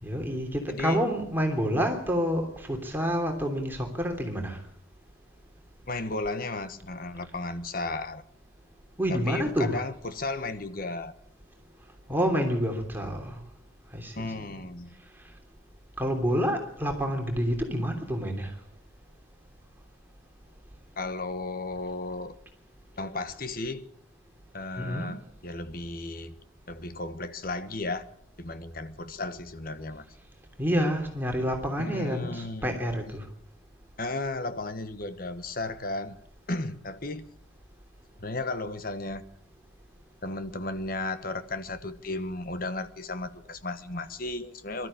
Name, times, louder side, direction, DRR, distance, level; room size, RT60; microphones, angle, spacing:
voice 1, 0.0-4.6 9.0-9.8 12.1-13.4 13.9-14.6 16.0-18.5 24.8-25.1 30.6-33.2, equal, 10° right, 3 dB, 3.2 m, -28 dB
voice 2, 0.7-1.0 5.9-8.2 9.1-11.1 14.1-15.0 21.0-22.3 22.9-23.9 24.5-26.4 26.7-28.1 28.4-30.0 31.8-32.8 34.0-36.2 36.5-37.3 38.2-39.3 40.2-44.9, left 2 dB, 45° left, 11 dB, 1.3 m, -34 dB
23.0 x 13.0 x 8.7 m, 0.66 s
head